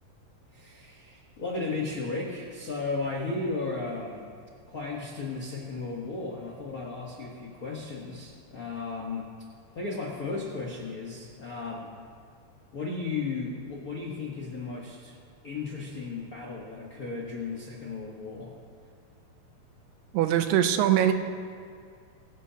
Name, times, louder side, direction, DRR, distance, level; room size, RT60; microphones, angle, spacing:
voice 1, 0.5-4.3 4.7-9.3 9.7-11.9 12.7-15.1 15.4-18.6, left 3 dB, 75° left, -3 dB, 0.8 m, -35 dB
voice 2, 20.1-21.1, right 11 dB, 85° right, 8 dB, 2.4 m, -22 dB
24.5 x 11.5 x 2.9 m, 2.3 s
omnidirectional pair, 3.9 m